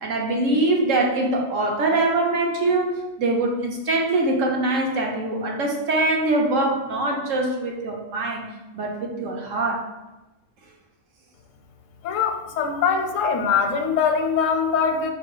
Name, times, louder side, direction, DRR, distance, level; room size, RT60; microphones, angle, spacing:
voice 1, 0.0-8.5 8.7-9.8, right 2 dB, 80° right, 0 dB, 1.2 m, -23 dB
voice 2, 12.0-15.1, left 6 dB, 85° left, 5 dB, 1.0 m, -22 dB
4.5 x 2.9 x 3.8 m, 1.0 s
omnidirectional pair, 1.3 m